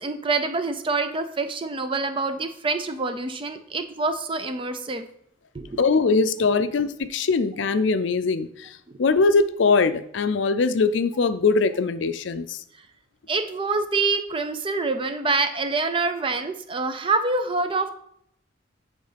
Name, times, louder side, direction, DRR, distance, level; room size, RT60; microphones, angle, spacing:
voice 1, 0.0-5.1 5.5-5.8 8.9-9.0 13.3-17.9, right 3 dB, 25° right, 8 dB, 0.6 m, -26 dB
voice 2, 5.8-8.7 9.0-12.6, left 4 dB, 70° left, 12 dB, 0.5 m, -21 dB
8.0 x 3.8 x 5.1 m, 0.71 s
head